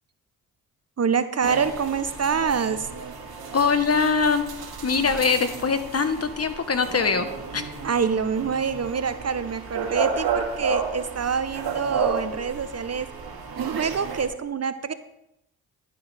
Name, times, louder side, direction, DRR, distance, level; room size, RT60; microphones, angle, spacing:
voice 1, 1.0-2.9 7.8-13.1 13.6-14.9, right 6 dB, 40° right, 12 dB, 0.8 m, -26 dB
sound 1, 1.4-14.3, right 5 dB, 65° right, 1.9 m, -32 dB
voice 2, 3.5-4.4 4.8-7.3 7.5-7.6, left 5 dB, 35° left, 9 dB, 1.3 m, -22 dB
11.0 x 9.5 x 3.4 m, 0.86 s
supercardioid pair, 45°, 40 cm